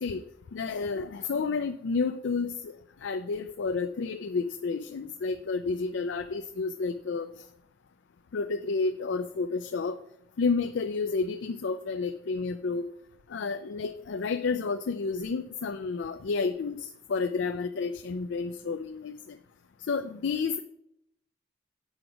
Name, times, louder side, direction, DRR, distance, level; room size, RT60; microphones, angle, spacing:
voice 1, 0.5-7.3 8.3-10.0 10.4-12.9 13.3-19.4 19.9-20.6, left 4 dB, 65° left, 9 dB, 0.4 m, -30 dB
7.9 x 5.9 x 5.0 m, 0.77 s
head